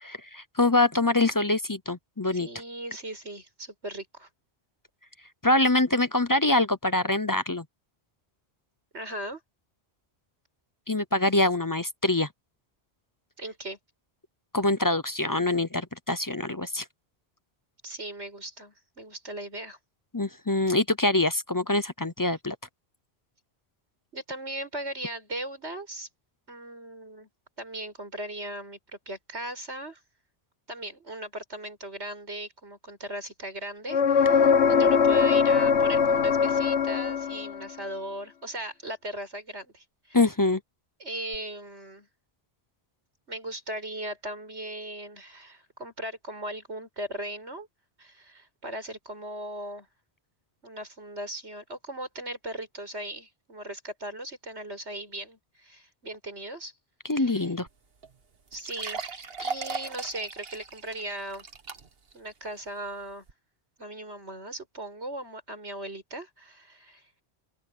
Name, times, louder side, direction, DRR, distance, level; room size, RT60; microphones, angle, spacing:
voice 1, 0.0-2.5 5.4-7.6 10.9-12.3 14.5-16.8 20.1-22.5 40.1-40.6 57.1-57.7, left 2 dB, 25° left, 0.5 m, -24 dB
voice 2, 2.3-4.3 8.9-9.4 13.4-13.8 17.8-19.8 24.1-26.1 26.5-27.3 27.6-30.0 30.7-40.2 41.0-42.1 43.3-47.7 48.0-49.9 50.6-56.7 57.1-57.5 58.5-59.0 59.4-61.5 62.1-63.2 63.8-67.0, right 1 dB, 90° right, 6.9 m, -38 dB
sound 1, 33.9-37.7 41.3-41.4, left 6 dB, 85° left, 1.3 m, -21 dB
sound 2, 57.7-57.8 58.0-58.1 58.5-62.1 62.6-62.7 63.3-63.4, right 4 dB, 60° right, 1.6 m, -37 dB
open air
omnidirectional pair, 1.1 m